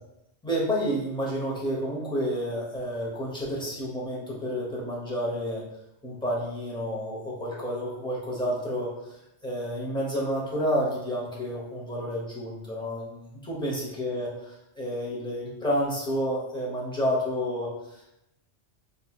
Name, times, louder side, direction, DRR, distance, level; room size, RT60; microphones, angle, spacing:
voice 1, 0.4-5.6 6.0-8.9 9.4-18.1, equal, 5° left, -6 dB, 0.6 m, -30 dB
3.7 x 2.7 x 2.3 m, 0.86 s
omnidirectional pair, 1.2 m